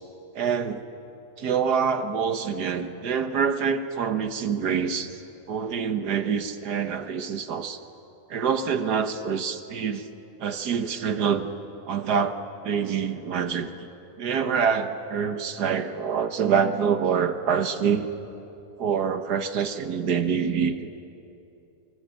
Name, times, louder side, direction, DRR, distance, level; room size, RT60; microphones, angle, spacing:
voice 1, 0.3-0.9 1.4-5.2 5.5-7.8 8.3-10.1 10.4-11.5 11.9-13.7 14.2-18.1 18.8-21.1, right 6 dB, 70° right, 8 dB, 1.7 m, -26 dB
25.5 x 24.5 x 7.8 m, 2.8 s
omnidirectional pair, 1.8 m